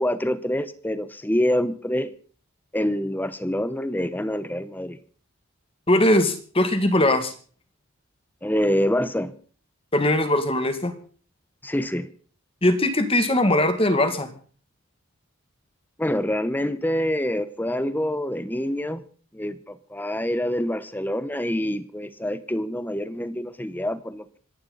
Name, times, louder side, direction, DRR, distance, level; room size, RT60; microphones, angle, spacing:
voice 1, 0.0-2.1 2.7-5.0 8.4-9.3 11.6-12.1 16.0-19.0 19.3-24.4, equal, 10° left, 14 dB, 0.9 m, -26 dB
voice 2, 5.9-7.3 9.9-10.9 12.6-14.3, left 1 dB, 25° left, 8 dB, 2.1 m, -20 dB
27.0 x 11.5 x 4.0 m, 0.42 s
head